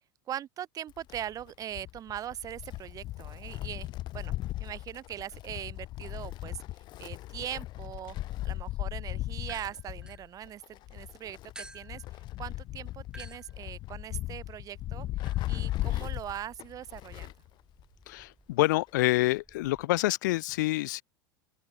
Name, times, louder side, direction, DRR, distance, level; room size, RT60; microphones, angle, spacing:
voice 1, 0.3-4.3 4.6-6.6 7.0-8.2 8.4-17.3, right 11 dB, 30° right, 0.7 m, -41 dB
Wind, 0.9-17.5 17.8-17.9 18.9-19.0, left 16 dB, 40° left, 0.9 m, -37 dB
sound 1, 9.4-10.9 11.6-19.8, right 2 dB, 5° right, 5.8 m, -54 dB
voice 2, 18.1-21.0, left 19 dB, 60° left, 0.4 m, -27 dB
open air
figure-of-eight pair, 75°, 11 cm